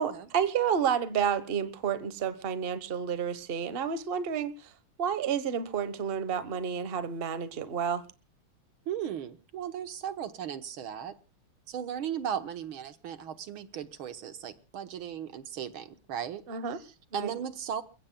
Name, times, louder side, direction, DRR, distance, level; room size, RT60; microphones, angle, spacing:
voice 1, 0.0-4.5 5.0-8.0 16.5-16.8 17.1-17.3, right 7 dB, 35° right, 1.1 m, -30 dB
voice 2, 8.9-11.2 11.7-16.4 16.7-17.8, right 9 dB, 75° right, 2.0 m, -37 dB
29.5 x 16.0 x 2.3 m
omnidirectional pair, 2.3 m